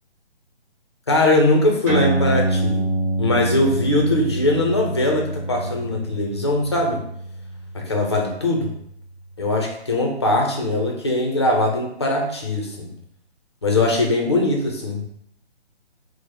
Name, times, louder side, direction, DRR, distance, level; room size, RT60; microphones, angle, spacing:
voice 1, 1.1-2.8 3.2-7.0 7.7-8.7 9.4-12.9 13.6-15.1, left 2 dB, 25° left, 1 dB, 0.5 m, -21 dB
sound 1, 1.8-8.8, right 1 dB, 20° right, 1.3 m, -26 dB
4.8 x 2.0 x 4.3 m, 0.72 s
hypercardioid pair, 160°, 34 cm